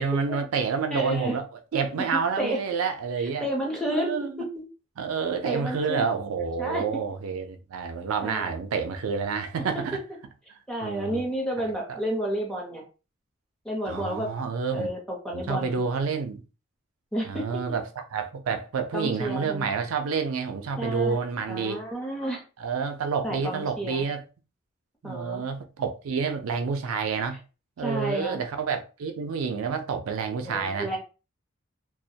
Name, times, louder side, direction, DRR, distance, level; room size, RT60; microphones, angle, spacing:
voice 1, 0.0-1.4 1.7-3.5 3.9-4.4 5.0-10.0 10.5-11.2 11.6-12.0 13.8-14.9 15.3-16.4 17.3-21.8 22.6-24.2 25.0-27.4 27.8-30.9, right 5 dB, 80° right, 0.4 m, -29 dB
voice 2, 0.9-1.4 2.0-2.6 3.4-4.6 5.4-6.1 6.6-6.8 8.2-8.5 9.7-10.0 10.7-12.8 13.6-14.3 14.7-15.8 17.1-17.4 18.9-19.7 20.8-21.2 21.5-22.4 23.2-24.0 25.0-25.4 27.8-28.4 30.4-31.0, right 1 dB, 5° left, 0.6 m, -31 dB
2.2 x 2.1 x 2.7 m
head